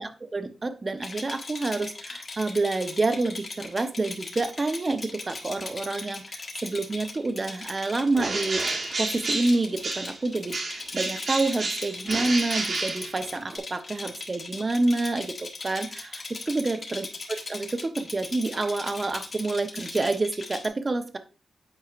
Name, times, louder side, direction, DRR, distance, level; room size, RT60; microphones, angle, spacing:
voice 1, 0.0-8.6 9.0-21.2, right 2 dB, 30° right, 9 dB, 0.7 m, -28 dB
Rattle, 1.0-20.7, left 3 dB, 45° left, 1.4 m, -39 dB
Bird, 8.1-10.2 10.5-13.6, right 3 dB, 50° right, 1.2 m, -30 dB
8.7 x 4.7 x 2.5 m, 0.35 s
wide cardioid pair, 100°, 0 cm